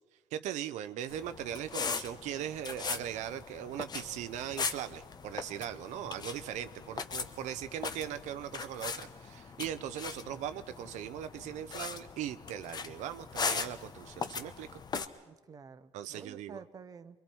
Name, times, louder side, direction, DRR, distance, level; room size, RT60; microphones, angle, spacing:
voice 1, 0.3-14.8 15.9-16.6, right 10 dB, 75° right, 10 dB, 0.7 m, -39 dB
sound 1, 1.1-15.1, left 5 dB, 35° left, 1.0 m, -40 dB
voice 2, 15.2-17.2, right 5 dB, 30° right, 10 dB, 0.8 m, -50 dB
27.5 x 23.0 x 4.6 m, 1.3 s
cardioid pair, 120°, 12 cm